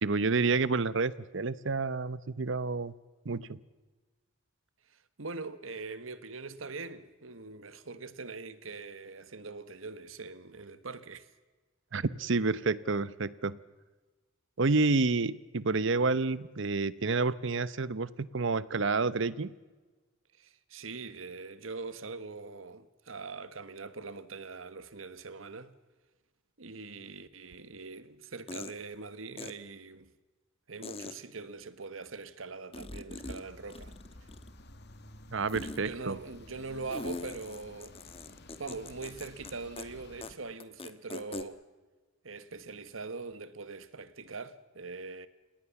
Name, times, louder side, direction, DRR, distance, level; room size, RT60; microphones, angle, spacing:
voice 1, 0.0-2.9 3.2-3.6 11.9-13.6 14.6-19.5 35.3-36.2, right 3 dB, 65° right, 0.9 m, -29 dB
voice 2, 4.9-11.3 20.4-25.7 26.6-30.1 30.7-33.9 35.8-38.0 38.6-41.6 42.2-45.3, right 4 dB, 85° right, 1.5 m, -42 dB
sound 1, 27.6-27.7 28.5-28.7 29.4-29.5 30.8-31.1 32.7-33.4 33.7-34.6 35.5-35.8 36.9-39.5 39.8-39.9 40.2-40.3 40.6-41.4, left 2 dB, 30° left, 1.4 m, -41 dB
sound 2, 33.1-40.4, left 1 dB, 60° left, 2.2 m, -53 dB
30.0 x 18.0 x 7.1 m
head